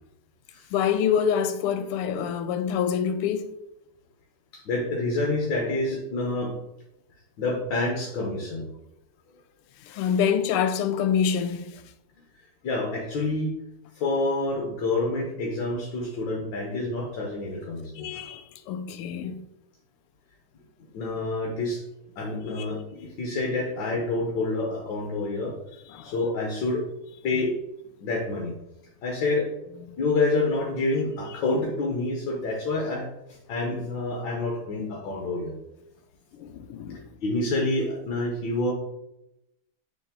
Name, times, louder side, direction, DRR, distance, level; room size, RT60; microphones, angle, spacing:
voice 1, 0.7-3.5 9.9-11.8 18.0-19.4 22.5-22.7 25.9-26.1 36.4-37.0, left 8 dB, 85° left, 1.5 m, -26 dB
voice 2, 4.5-6.6 7.4-8.7 12.6-13.5 13.9-18.1 20.8-21.8 22.2-25.6 26.0-26.9 27.2-27.6 28.0-28.5 29.0-29.5 30.0-35.6 37.2-38.7, left 2 dB, 65° left, 1.6 m, -28 dB
6.9 x 3.9 x 3.7 m
omnidirectional pair, 2.4 m